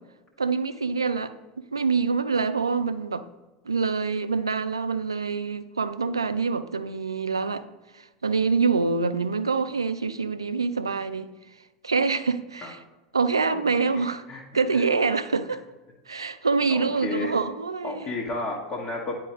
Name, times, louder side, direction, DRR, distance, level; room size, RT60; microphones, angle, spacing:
voice 1, 0.4-3.2 3.7-7.6 7.9-11.3 11.8-12.8 13.1-14.2 14.5-15.7 16.1-18.1, right 4 dB, 80° right, 0.3 m, -26 dB
voice 2, 13.5-14.4 14.7-14.8 16.7-17.3 17.8-19.1, left 3 dB, 35° left, 1.2 m, -32 dB
9.5 x 4.6 x 3.1 m
figure-of-eight pair, 80°, 2 cm